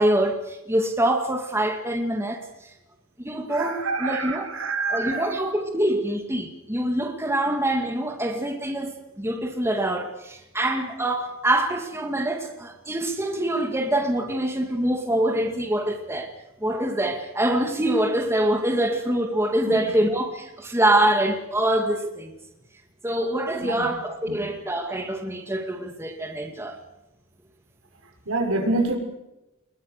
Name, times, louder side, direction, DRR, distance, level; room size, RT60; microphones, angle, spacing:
voice 1, 0.0-2.5 3.2-4.5 4.9-16.3 16.6-22.4 23.0-26.8, right 1 dB, 10° right, 2.2 m, -25 dB
voice 2, 3.5-5.3 19.7-19.8 23.6-23.9 24.2-24.4 28.3-29.0, right 2 dB, 75° right, 5.9 m, -27 dB
25.0 x 22.0 x 6.8 m
head